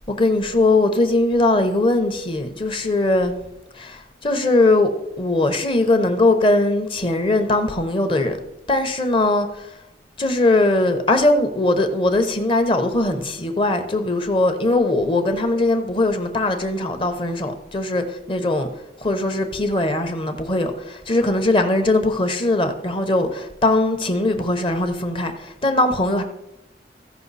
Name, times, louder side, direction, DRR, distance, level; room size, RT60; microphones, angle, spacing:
voice 1, 0.1-3.3 3.7-8.4 8.7-9.7 10.2-18.7 19.0-26.2, left 2 dB, 30° left, 0.9 m, -20 dB
15.0 x 5.4 x 4.1 m
head